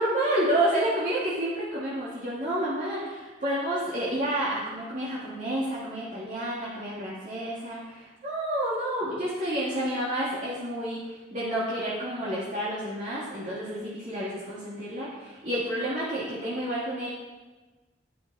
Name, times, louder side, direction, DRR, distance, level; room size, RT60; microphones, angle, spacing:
voice 1, 0.0-17.1, right 1 dB, 45° right, -9 dB, 2.7 m, -30 dB
13.0 x 9.4 x 4.3 m, 1.2 s
head